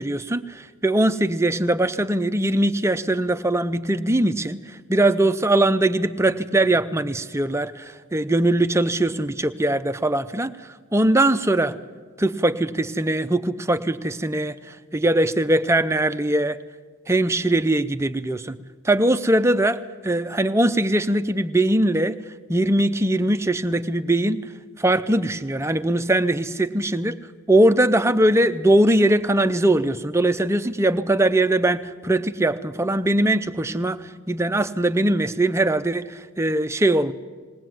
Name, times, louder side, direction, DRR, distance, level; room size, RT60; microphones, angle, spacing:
voice 1, 0.0-10.5 10.9-11.8 12.2-16.6 17.1-18.6 18.8-22.2 22.5-24.4 24.8-27.2 27.5-37.1, right 1 dB, 10° right, 11 dB, 0.5 m, -21 dB
20.5 x 18.5 x 7.7 m, 1.5 s
head